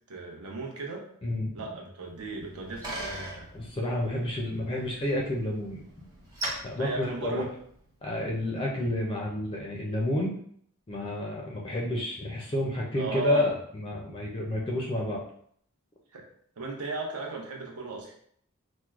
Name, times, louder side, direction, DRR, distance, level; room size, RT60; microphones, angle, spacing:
voice 1, 0.1-1.1 1.5-3.5 6.8-7.5 13.0-13.5 16.1-16.2 16.6-18.1, right 2 dB, 75° right, 0 dB, 0.7 m, -36 dB
Bicycle, 2.2-7.9, right 1 dB, 15° right, 0.8 m, -41 dB
voice 2, 3.5-5.8 6.6-7.5 8.0-10.3 10.9-15.2, left 1 dB, 25° left, -2 dB, 0.4 m, -30 dB
4.4 x 2.1 x 2.4 m, 0.64 s
head